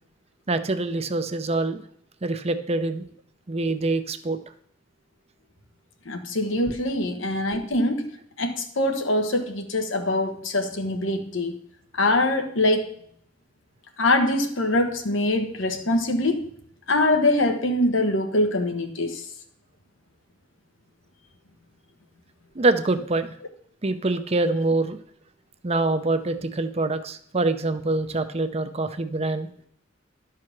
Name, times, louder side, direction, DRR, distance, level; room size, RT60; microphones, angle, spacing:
voice 1, 0.5-1.8 2.2-3.0 3.5-4.4 22.6-23.3 23.8-25.0 25.6-29.5, right 2 dB, 35° right, 10 dB, 0.6 m, -25 dB
voice 2, 6.0-8.0 8.4-11.5 11.9-12.9 14.0-16.4 16.9-19.2, left 1 dB, 85° left, 5 dB, 1.3 m, -23 dB
12.0 x 4.9 x 5.9 m, 0.65 s
head